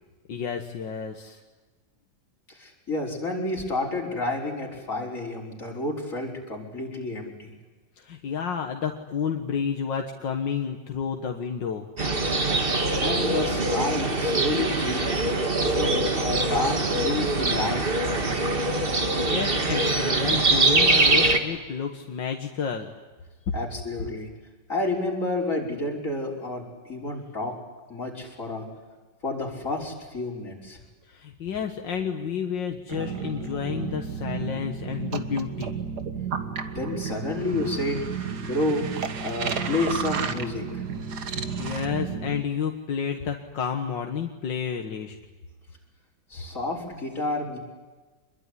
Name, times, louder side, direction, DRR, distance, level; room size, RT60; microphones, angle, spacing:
voice 1, 0.3-1.4 8.0-11.9 19.0-22.9 31.0-35.7 41.6-45.2, left 7 dB, 80° left, 4 dB, 2.2 m, -30 dB
voice 2, 2.5-7.5 13.0-15.2 15.7-19.1 23.5-24.3 24.7-27.5 27.9-28.6 29.2-30.8 36.7-38.1 38.4-38.9 39.2-40.9 46.3-47.6, left 2 dB, 45° left, -2 dB, 5.9 m, -30 dB
sound 1, 12.0-21.4, right 2 dB, 30° right, 2.1 m, -23 dB
sound 2, 32.9-42.4, right 6 dB, 65° right, 2.0 m, -32 dB
26.5 x 22.0 x 10.0 m, 1.3 s
omnidirectional pair, 2.0 m